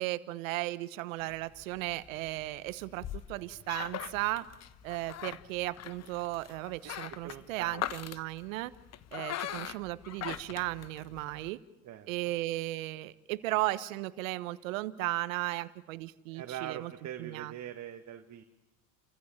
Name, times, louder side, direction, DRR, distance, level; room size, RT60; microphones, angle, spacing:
voice 1, 0.0-4.5 4.8-8.7 9.1-11.6 12.1-16.9 17.2-17.5, right 18 dB, 80° right, 15 dB, 1.3 m, -35 dB
sound 1, 1.2-11.5, left 11 dB, 40° left, 1.2 m, -42 dB
voice 2, 7.2-7.8 11.8-12.1 16.3-18.4, right 11 dB, 45° right, 6 dB, 1.9 m, -42 dB
30.0 x 15.0 x 8.7 m, 0.98 s
supercardioid pair, 95°, 39 cm